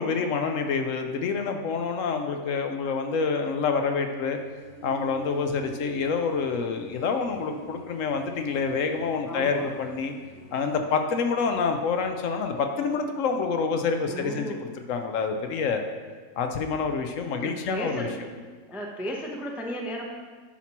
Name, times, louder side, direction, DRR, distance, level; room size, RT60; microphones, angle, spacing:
voice 1, 0.0-4.4 4.8-10.1 10.5-14.5 14.9-15.8 16.4-18.1, left 5 dB, 70° left, 5 dB, 0.9 m, -27 dB
sound 1, 4.3-10.8, right 3 dB, 45° left, 0.9 m, -46 dB
voice 2, 9.3-9.7 14.1-14.6 17.4-18.2 18.7-20.0, equal, ahead, 0 dB, 0.4 m, -34 dB
9.9 x 5.8 x 3.0 m, 1.5 s
omnidirectional pair, 1.5 m